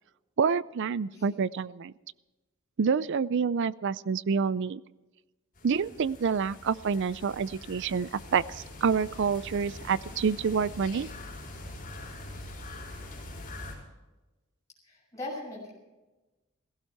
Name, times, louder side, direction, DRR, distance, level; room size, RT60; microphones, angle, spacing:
voice 1, 0.4-1.9 2.8-4.8 5.6-11.1, right 6 dB, 55° right, 19 dB, 0.4 m, -28 dB
sound 1, 5.5-13.7, left 2 dB, 40° left, 5.2 m, -44 dB
voice 2, 14.8-15.7, left 2 dB, 15° left, -4 dB, 6.9 m, -40 dB
16.5 x 15.5 x 4.6 m, 1.1 s
head